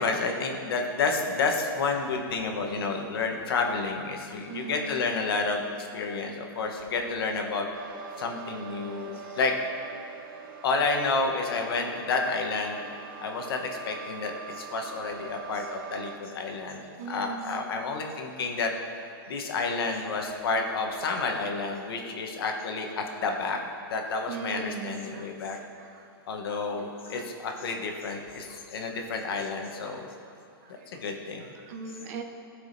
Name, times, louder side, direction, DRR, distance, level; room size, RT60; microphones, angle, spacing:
voice 1, 0.0-7.7 8.2-9.5 10.6-12.8 13.2-18.7 19.3-23.6 23.9-25.6 26.3-30.1 30.9-31.4, left 4 dB, 70° left, 2 dB, 1.0 m, -30 dB
voice 2, 4.5-5.2 8.1-8.2 17.0-17.6 24.3-25.3 25.8-26.1 27.1-27.2 28.5-28.9 30.6-30.7 31.5-32.2, right 4 dB, 40° right, 4 dB, 0.6 m, -39 dB
sound 1, 7.7-16.1, right 6 dB, 60° right, 1.1 m, -43 dB
14.0 x 4.8 x 2.6 m, 2.5 s
supercardioid pair, 160°, 13 cm